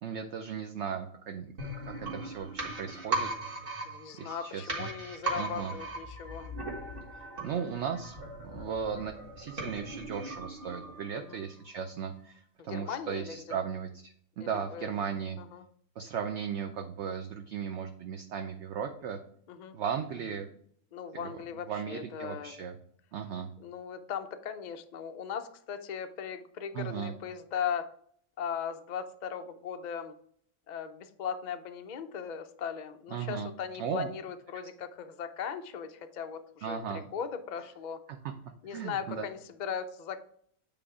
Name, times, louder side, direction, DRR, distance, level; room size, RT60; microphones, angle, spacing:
voice 1, 0.0-1.5 1.7-3.3 4.2-4.9 5.4-5.7 7.4-15.4 16.0-19.2 19.7-20.5 21.1-22.8 23.1-23.5 26.7-27.1 33.1-33.5 33.8-34.1 36.6-37.0 38.7-39.2, right 7 dB, 60° right, 5 dB, 0.8 m, -36 dB
sound 1, 1.6-11.3 11.6-11.7, right 2 dB, 40° right, 1.7 m, -38 dB
voice 2, 3.8-6.5 11.1-11.4 12.7-13.5 14.5-14.9 15.4-15.6 19.5-19.8 20.9-22.6 23.6-27.9 28.4-30.1 30.7-36.8 37.1-38.0 38.6-40.2, left 7 dB, 75° left, 7 dB, 0.4 m, -38 dB
8.9 x 3.5 x 4.8 m, 0.64 s
omnidirectional pair, 1.6 m